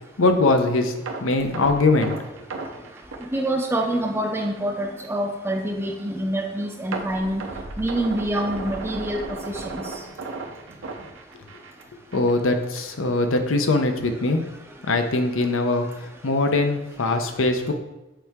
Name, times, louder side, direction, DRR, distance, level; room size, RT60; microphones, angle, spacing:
voice 1, 0.2-2.1 12.1-14.4 14.9-15.9 16.2-17.7, left 2 dB, 85° left, 6 dB, 0.7 m, -21 dB
sound 1, 1.1-4.1 4.4-4.6 5.0-5.1 6.9-11.8 12.1-12.3 12.8-12.9, right 3 dB, 85° right, 0.8 m, -35 dB
voice 2, 3.3-7.4 7.8-9.2 9.4-10.0, right 1 dB, 10° right, 1 dB, 0.5 m, -26 dB
6.9 x 4.6 x 3.5 m, 1.0 s
head